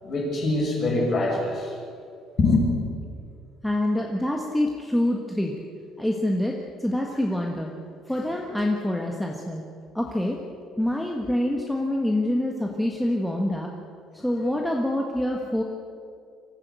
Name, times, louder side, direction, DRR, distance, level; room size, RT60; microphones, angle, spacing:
voice 1, 0.0-1.7 2.4-2.6 12.3-12.4 14.2-14.3, left 2 dB, 35° left, -1 dB, 6.3 m, -24 dB
voice 2, 3.6-5.5 6.0-7.7 8.1-9.6 9.9-10.4 10.8-13.7 14.2-15.6, left 1 dB, 5° left, 0 dB, 1.4 m, -26 dB
25.0 x 15.0 x 8.2 m, 2.4 s
cardioid pair, 170°, 0 cm